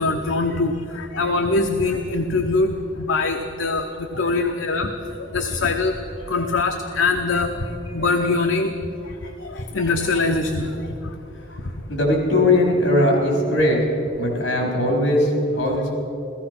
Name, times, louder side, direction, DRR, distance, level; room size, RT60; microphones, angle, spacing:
voice 1, 0.0-4.9 5.3-6.0 6.3-7.5 7.9-8.7 9.4-10.7, left 3 dB, 85° left, 4 dB, 0.9 m, -22 dB
voice 2, 11.9-13.8 14.2-15.9, left 1 dB, 70° left, -1 dB, 4.2 m, -19 dB
16.0 x 15.0 x 6.0 m, 2.8 s
head